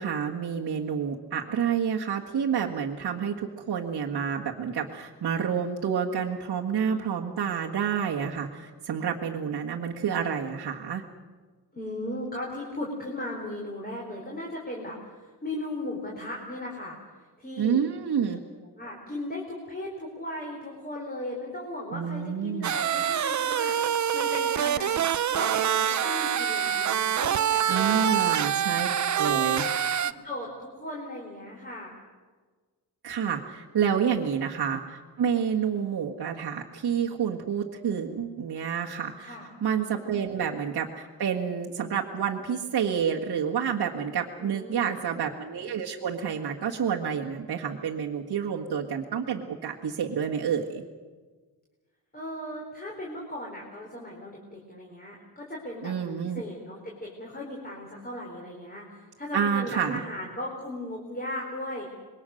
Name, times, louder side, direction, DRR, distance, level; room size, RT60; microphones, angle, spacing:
voice 1, 0.0-11.0 17.6-18.4 21.9-22.7 27.7-29.6 33.0-50.8 55.8-56.4 59.3-60.0, right 7 dB, 60° right, -3 dB, 1.8 m, -29 dB
voice 2, 11.7-16.9 17.4-17.8 18.3-18.4 18.8-24.9 25.2-28.9 29.2-29.7 30.0-32.0 34.1-34.4 39.2-39.5 39.9-40.1 44.4-45.1 52.1-55.9 56.3-61.9, left 1 dB, 20° left, -2 dB, 4.5 m, -37 dB
sound 1, 22.6-30.1, right 9 dB, 45° right, 0.7 m, -26 dB
26.5 x 22.0 x 6.5 m, 1.4 s
wide cardioid pair, 125°, 42 cm